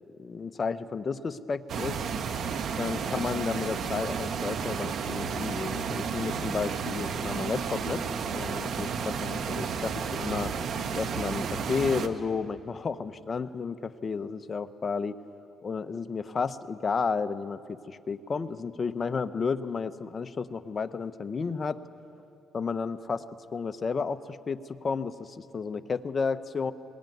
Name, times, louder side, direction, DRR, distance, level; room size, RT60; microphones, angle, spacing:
voice 1, 0.2-2.1 2.8-8.0 8.3-10.5 10.9-15.1 15.6-21.8 22.5-23.2 23.5-26.7, left 5 dB, 40° left, 11 dB, 0.9 m, -32 dB
sound 1, 1.7-12.1, right 6 dB, 65° right, 1.2 m, -32 dB
20.5 x 19.0 x 9.3 m, 2.5 s
cardioid pair, 90°, 0 cm